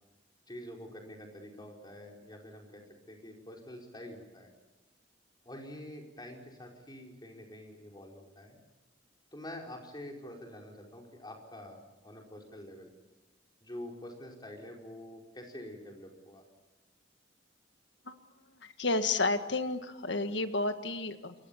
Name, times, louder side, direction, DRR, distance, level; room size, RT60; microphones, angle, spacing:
voice 1, 0.5-2.8 3.1-4.5 5.4-8.6 9.3-12.9 13.6-16.4, left 1 dB, 25° left, 0 dB, 5.1 m, -46 dB
voice 2, 18.6-21.4, left 3 dB, 70° left, 8 dB, 1.7 m, -31 dB
27.5 x 23.0 x 7.2 m, 1.0 s
head